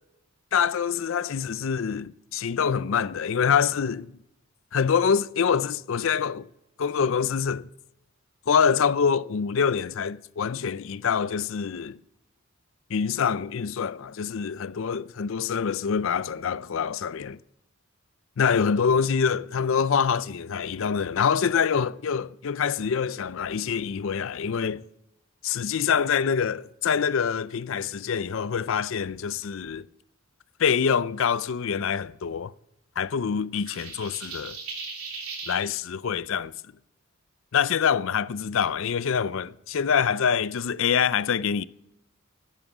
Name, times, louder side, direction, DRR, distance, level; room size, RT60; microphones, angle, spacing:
voice 1, 0.5-4.1 4.7-6.5 6.8-7.7 8.5-12.0 12.9-17.4 18.4-24.8 25.4-29.8 30.6-32.5 33.0-34.6 35.5-36.5 37.5-41.6, left 7 dB, 60° left, 0.4 m, -25 dB
sound 1, 33.7-35.6, right 4 dB, 80° right, 3.4 m, -37 dB
11.0 x 9.0 x 8.1 m
head